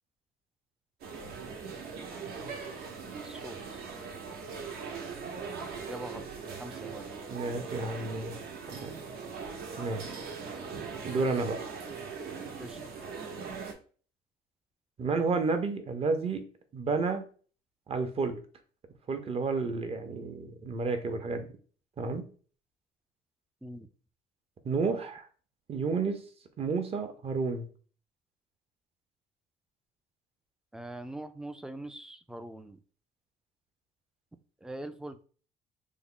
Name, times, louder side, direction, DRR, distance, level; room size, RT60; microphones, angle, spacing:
sound 1, 1.0-13.7, right 5 dB, 65° right, 0.8 m, -40 dB
voice 1, 3.2-3.6 5.8-6.2 6.6-7.1 12.6-12.8 23.6-23.9 30.7-32.8 34.6-35.2, right 1 dB, 5° right, 10 dB, 0.3 m, -42 dB
voice 2, 7.3-8.3 8.7-8.9 9.8-10.0 11.0-11.6 15.0-16.5 16.7-17.3 17.9-18.4 19.1-21.5 22.0-22.3 24.6-25.2 25.7-26.2 26.6-27.7, right 4 dB, 35° right, 8 dB, 0.6 m, -31 dB
3.5 x 2.1 x 3.7 m, 0.41 s
cardioid pair, 110°, 17 cm